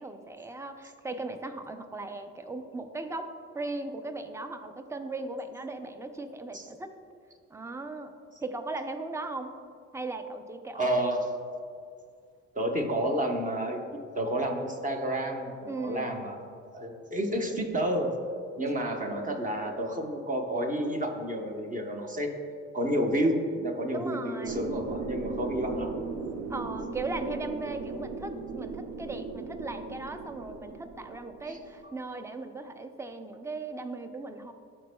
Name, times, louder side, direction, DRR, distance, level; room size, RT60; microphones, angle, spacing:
voice 1, 0.0-3.3 3.5-6.9 7.5-8.1 8.4-9.5 9.9-10.9 15.7-16.2 23.9-24.8 26.5-34.5, right 2 dB, 10° right, 7 dB, 0.5 m, -37 dB
voice 2, 10.7-11.3 12.5-16.4 16.7-18.2 18.6-22.3 22.7-26.0 31.4-31.6, right 1 dB, 25° right, 2 dB, 0.9 m, -30 dB
sound 1, 24.4-31.8, right 4 dB, 60° right, 0.6 m, -37 dB
12.0 x 4.3 x 2.2 m, 2.4 s
cardioid pair, 90°, 30 cm